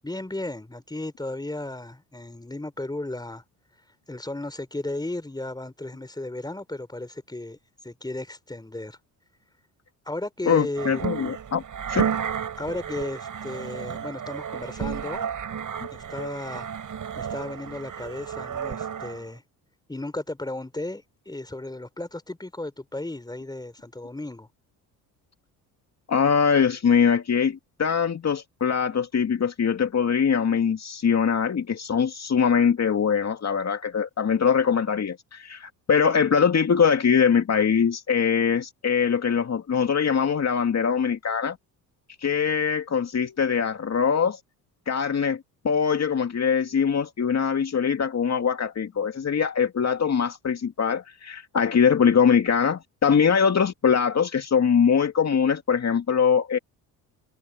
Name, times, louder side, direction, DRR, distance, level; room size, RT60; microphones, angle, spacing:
voice 1, 0.0-3.4 4.1-7.6 7.8-9.0 10.1-11.0 12.6-15.3 15.9-16.7 17.2-19.4 19.9-24.5, left 2 dB, 10° left, 4.1 m, -34 dB
voice 2, 10.5-11.6 11.9-12.1 26.1-41.6 42.2-44.4 44.9-56.6, left 6 dB, 35° left, 2.5 m, -22 dB
sound 1, 10.8-19.2, right 8 dB, 45° right, 6.6 m, -32 dB
hypercardioid pair, 60°, 43 cm